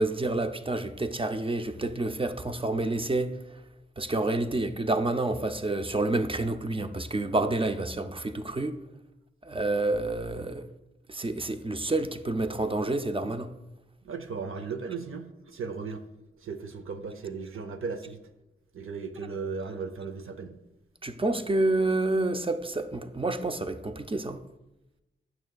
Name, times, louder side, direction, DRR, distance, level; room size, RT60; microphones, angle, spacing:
voice 1, 0.0-3.3 4.0-8.8 9.4-10.7 11.1-13.5 21.0-24.4, right 2 dB, 25° right, 0.5 m, -28 dB
voice 2, 14.0-16.0 16.4-18.2 18.7-20.6, right 5 dB, 85° right, 0.6 m, -36 dB
9.1 x 6.2 x 2.3 m
cardioid pair, 50°, 21 cm